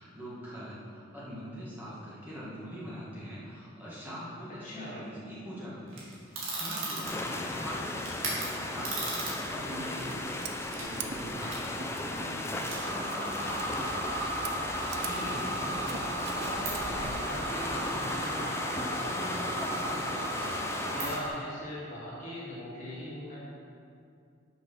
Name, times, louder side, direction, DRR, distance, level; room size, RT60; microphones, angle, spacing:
voice 1, 0.0-13.7, equal, 10° right, -9 dB, 1.5 m, -43 dB
voice 2, 4.6-5.0 15.0-16.1 16.3-20.6 20.9-23.5, equal, 40° left, -7 dB, 2.0 m, -41 dB
sound 1, 5.9-8.4 8.8-9.6 9.9-10.1 10.6-10.8 11.4-11.5 11.9-12.0 12.7-21.3, right 1 dB, 75° right, 2.0 m, -36 dB
sound 2, 7.0-21.2, left 1 dB, 15° left, 0.4 m, -36 dB
Scissors, 9.1-17.2, right 5 dB, 55° right, 0.5 m, -46 dB
6.1 x 5.6 x 5.8 m, 2.4 s
head